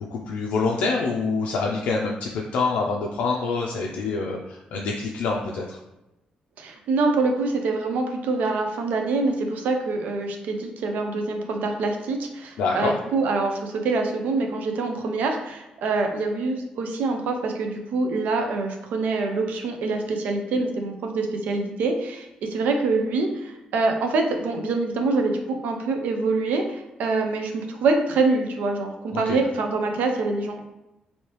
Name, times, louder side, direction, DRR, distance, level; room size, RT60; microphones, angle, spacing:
voice 1, 0.1-5.8 12.6-12.9 29.1-29.4, left 4 dB, 85° left, -1 dB, 0.4 m, -26 dB
voice 2, 6.6-30.6, right 3 dB, 80° right, 4 dB, 0.5 m, -25 dB
3.1 x 2.7 x 3.0 m, 0.94 s
cardioid pair, 105°, 3 cm